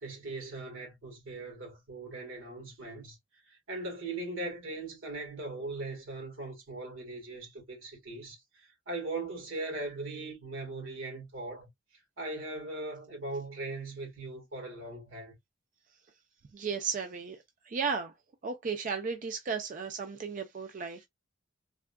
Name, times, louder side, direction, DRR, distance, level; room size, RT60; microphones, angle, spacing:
voice 1, 0.0-3.2 3.5-11.7 12.2-15.3, right 2 dB, 85° right, 1.5 m, -39 dB
voice 2, 16.5-18.1 18.4-21.1, right 5 dB, 40° right, 0.4 m, -35 dB
3.5 x 2.1 x 2.2 m
head